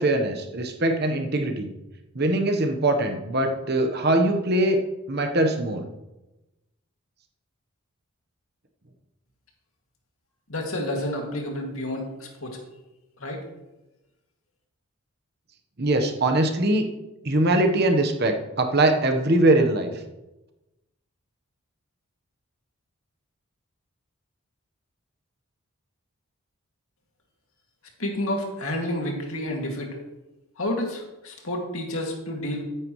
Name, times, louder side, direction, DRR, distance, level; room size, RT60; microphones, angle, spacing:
voice 1, 0.0-1.7 2.1-4.8 5.1-5.8 15.8-16.9 17.2-20.0, right 1 dB, 45° right, 5 dB, 1.2 m, -22 dB
voice 2, 10.5-12.6 13.2-13.4 28.0-30.0 30.6-32.6, left 1 dB, 70° left, 0 dB, 2.4 m, -30 dB
13.5 x 9.4 x 3.2 m, 1.0 s
head